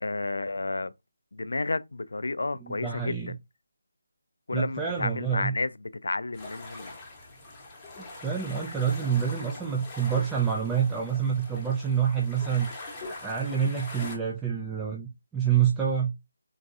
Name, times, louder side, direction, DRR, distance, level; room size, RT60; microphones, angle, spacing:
voice 1, 0.0-0.9 1.3-3.2 4.5-6.9, left 3 dB, 75° left, 0.3 m, -31 dB
voice 2, 2.6-3.3 4.5-5.5 8.2-12.7 13.2-16.1, right 8 dB, 5° right, 0.3 m, -27 dB
sound 1, 6.3-14.2, left 2 dB, 10° left, 0.9 m, -43 dB
3.8 x 2.3 x 2.7 m
figure-of-eight pair, 170°, 0 cm